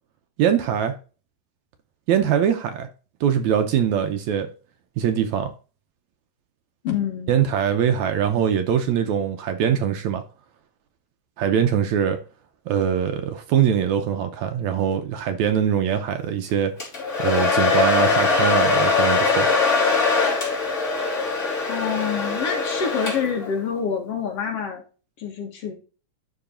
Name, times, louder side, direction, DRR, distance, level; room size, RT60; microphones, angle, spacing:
voice 1, 0.4-1.0 2.1-2.9 3.2-4.5 5.0-5.5 7.3-10.2 11.4-12.2 12.7-16.7 17.2-19.5, right 8 dB, 75° right, 1.9 m, -22 dB
voice 2, 6.8-7.3 21.6-24.8 25.2-25.7, left 7 dB, 55° left, 2.1 m, -27 dB
Domestic sounds home sounds, 16.8-23.5, left 4 dB, 20° left, 3.0 m, -21 dB
11.5 x 3.9 x 3.7 m
omnidirectional pair, 3.7 m